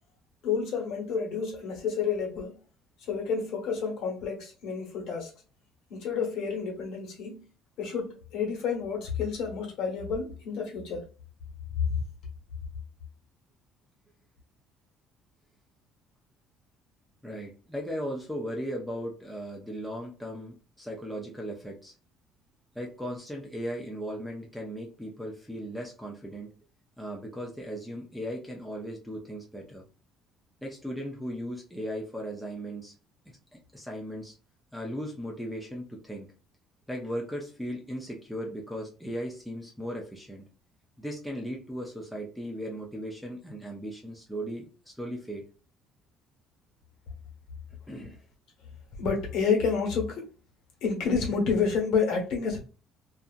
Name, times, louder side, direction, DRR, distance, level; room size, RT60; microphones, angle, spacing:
voice 1, 0.4-2.6 3.0-5.3 5.9-7.5 7.8-11.0 11.9-12.0 49.0-50.3 50.8-52.6, left 5 dB, 60° left, 1.2 m, -29 dB
voice 2, 17.2-21.9 22.7-26.5 27.0-29.8 30.6-32.9 33.5-34.3 34.7-36.3 36.9-40.4 41.0-45.4 47.9-48.2, equal, ahead, 0.4 m, -37 dB
2.7 x 2.4 x 2.4 m
cardioid pair, 180°, 0 cm